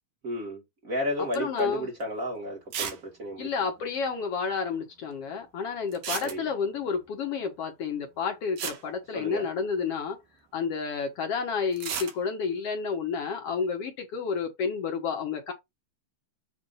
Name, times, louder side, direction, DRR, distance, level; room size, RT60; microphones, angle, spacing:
voice 1, 0.2-3.5 6.2-6.4 9.1-9.5, left 1 dB, 40° right, 1.1 m, -32 dB
voice 2, 1.3-1.9 3.4-10.2 10.5-15.5, left 5 dB, 65° left, 1.5 m, -30 dB
sound 1, 1.3-1.6 2.0-2.1 2.7-3.1 3.3-3.4 3.6-3.7 5.9-6.8 8.2-8.3 8.6-9.8 11.7-12.2, right 7 dB, 70° right, 2.8 m, -34 dB
7.3 x 2.5 x 5.5 m
omnidirectional pair, 4.1 m